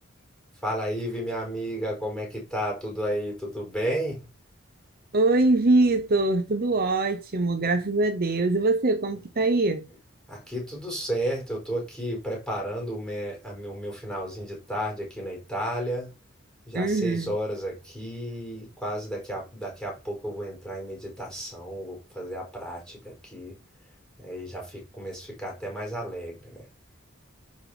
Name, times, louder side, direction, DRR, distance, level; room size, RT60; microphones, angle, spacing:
voice 1, 0.6-4.2 10.3-16.1 16.7-23.6 24.2-26.6, equal, 5° left, 5.4 m, -32 dB
voice 2, 5.1-9.8 16.7-17.3, right 2 dB, 50° right, 0.9 m, -23 dB
10.5 x 5.3 x 5.1 m
head